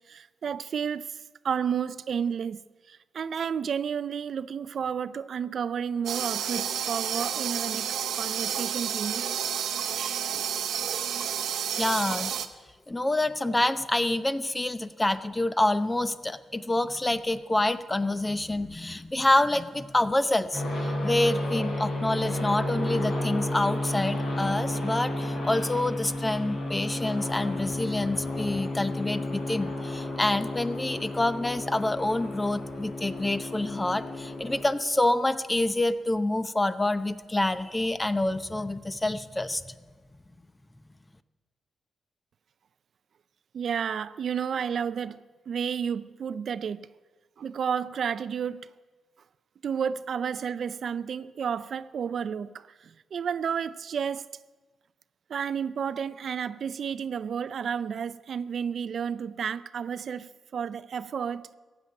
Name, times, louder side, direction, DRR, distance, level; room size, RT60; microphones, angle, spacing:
voice 1, 0.1-1.2 1.4-2.6 2.9-9.2 10.0-10.3 43.5-46.9 47.4-48.7 49.6-54.3 55.3-61.5, right 7 dB, 65° right, 0.4 m, -31 dB
sound 1, 6.1-12.5, right 9 dB, 90° right, 0.8 m, -30 dB
voice 2, 11.8-12.3 12.9-39.6, left 1 dB, 15° left, 0.8 m, -27 dB
sound 2, 20.5-34.6, left 1 dB, 75° left, 4.8 m, -32 dB
15.5 x 7.9 x 9.6 m
cardioid pair, 80°, 0 cm